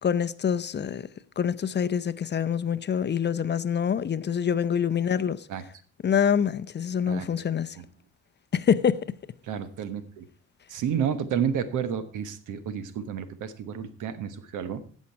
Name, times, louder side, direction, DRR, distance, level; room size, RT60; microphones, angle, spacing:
voice 1, 0.0-1.1 1.4-5.5 6.0-7.8 8.5-9.0, left 8 dB, 35° left, 0.6 m, -25 dB
voice 2, 9.4-10.2 10.7-14.8, right 8 dB, 80° right, 1.2 m, -31 dB
16.0 x 6.3 x 4.6 m
cardioid pair, 90°, 30 cm